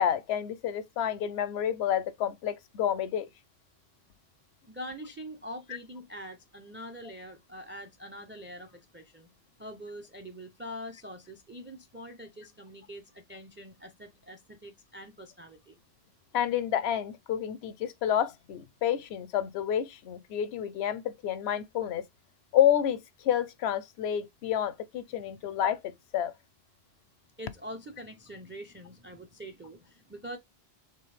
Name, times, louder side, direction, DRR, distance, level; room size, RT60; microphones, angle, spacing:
voice 1, 0.0-3.3 16.3-22.0 22.5-26.3, left 10 dB, 85° left, 0.8 m, -29 dB
voice 2, 4.7-9.3 9.6-15.8 27.4-30.4, equal, 15° right, 0.4 m, -44 dB
4.5 x 3.2 x 3.3 m
omnidirectional pair, 1.1 m